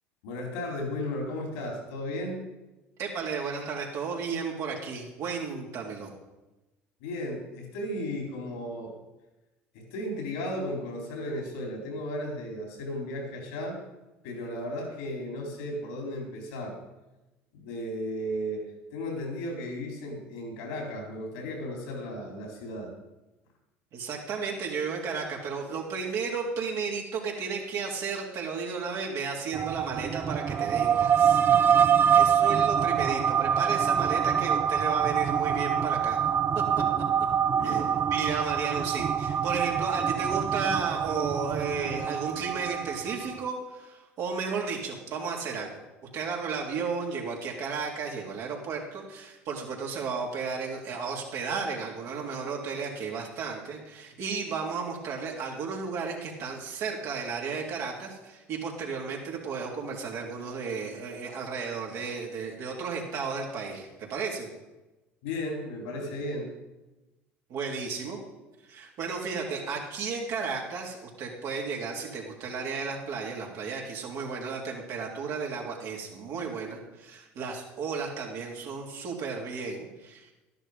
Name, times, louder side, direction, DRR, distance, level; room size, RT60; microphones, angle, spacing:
voice 1, 0.2-2.4 7.0-9.0 9.7-13.8 14.2-16.8 17.5-18.6 18.9-22.9 37.5-37.9 65.2-66.5, left 1 dB, 75° left, 1 dB, 4.1 m, -35 dB
voice 2, 3.0-6.1 23.9-31.4 32.1-36.2 37.6-45.7 46.1-64.5 66.0-66.1 67.5-68.2 68.7-80.3, right 5 dB, 60° right, -1 dB, 3.4 m, -33 dB
sound 1, 29.5-43.5, right 8 dB, 40° right, 0.6 m, -25 dB
12.5 x 10.5 x 5.2 m, 1.1 s
hypercardioid pair, 70°, 6 cm